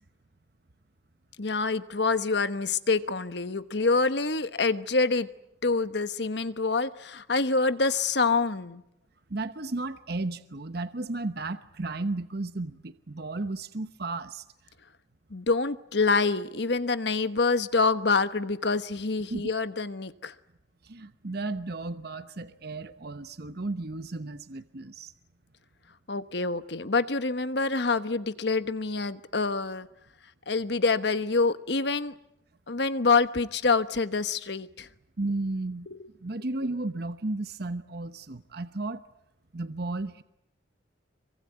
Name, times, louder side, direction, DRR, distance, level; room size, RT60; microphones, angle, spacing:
voice 1, 1.4-5.3 5.6-8.8 15.3-20.3 26.1-29.9 30.5-32.1 32.7-34.9 35.9-36.0, left 4 dB, 60° left, 12 dB, 1.2 m, -26 dB
voice 2, 9.3-14.4 19.3-19.5 20.8-25.1 35.2-35.9 36.2-39.0 39.5-40.2, right 2 dB, 55° right, 11 dB, 1.0 m, -34 dB
25.5 x 24.0 x 9.3 m, 0.82 s
head